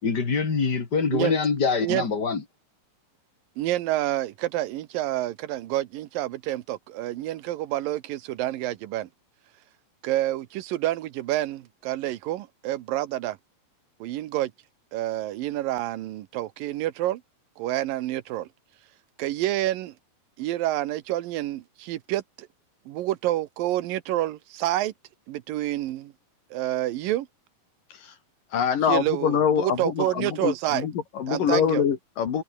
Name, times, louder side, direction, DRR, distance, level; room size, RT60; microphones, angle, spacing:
voice 1, 0.0-2.4, left 5 dB, 30° left, 3.0 m, -24 dB
voice 2, 3.6-9.1 10.0-13.4 14.0-14.5 14.9-17.2 17.6-18.5 19.2-19.9 20.4-22.5 22.9-24.9 25.3-26.1 26.5-27.3 28.9-30.9 31.3-31.8, right 14 dB, 80° right, 2.7 m, -28 dB
voice 3, 28.5-32.4, left 8 dB, 70° left, 4.1 m, -25 dB
omnidirectional pair, 4.0 m